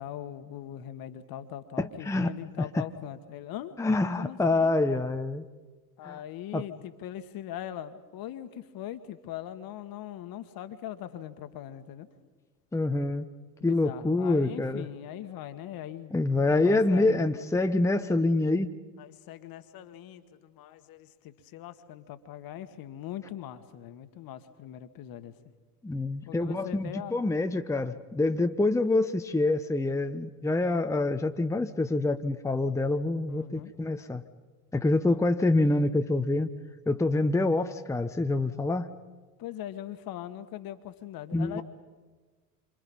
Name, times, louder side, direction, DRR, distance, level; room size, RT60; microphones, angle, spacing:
voice 1, 0.0-3.8 4.2-4.7 6.0-12.1 13.6-16.2 16.5-17.2 19.0-25.5 26.2-27.2 33.2-33.7 39.4-41.6, left 11 dB, 50° left, 10 dB, 1.7 m, -41 dB
voice 2, 1.8-2.8 3.8-5.4 6.0-6.2 6.5-6.7 12.7-13.3 13.6-14.9 16.1-18.7 25.8-34.2 34.7-36.5 36.9-38.9 41.3-41.6, left 2 dB, 5° left, 7 dB, 1.0 m, -26 dB
27.5 x 26.0 x 5.5 m, 1.3 s
figure-of-eight pair, 65°, 46 cm